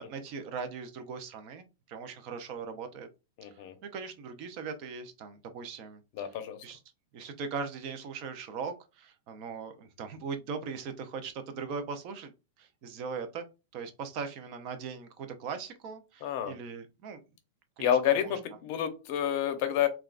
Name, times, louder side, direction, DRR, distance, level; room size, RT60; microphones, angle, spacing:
voice 1, 0.0-3.1 3.5-3.6 3.9-6.3 6.6-6.8 7.1-12.3 12.6-13.5 13.7-17.2 17.8-18.3, right 5 dB, 40° right, 8 dB, 0.6 m, -40 dB
voice 2, 3.4-3.7 6.1-6.6 16.2-16.5 17.8-19.9, left 10 dB, 45° left, 8 dB, 0.6 m, -29 dB
3.5 x 2.3 x 2.4 m, 0.28 s
supercardioid pair, 160°, 0 cm